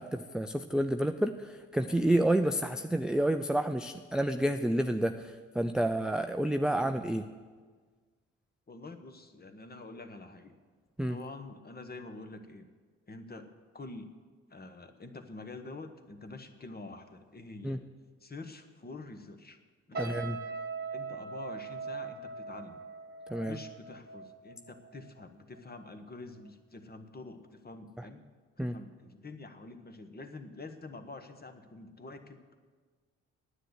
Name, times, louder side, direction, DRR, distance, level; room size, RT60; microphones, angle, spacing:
voice 1, 0.0-7.3 11.0-11.2 17.6-17.8 20.0-20.4 23.3-23.6 28.0-28.1 28.6-28.7, right 1 dB, ahead, 7 dB, 0.5 m, -29 dB
voice 2, 8.7-10.6 11.1-12.7 13.1-14.1 14.5-17.8 18.2-19.6 19.9-20.2 20.9-22.8 23.4-28.2 28.6-32.4, left 3 dB, 25° left, 8 dB, 1.3 m, -47 dB
sound 1, 19.9-25.2 25.6-25.9, right 4 dB, 25° right, 1.6 m, -41 dB
10.0 x 8.1 x 8.0 m, 1.5 s
hypercardioid pair, 45°, 35 cm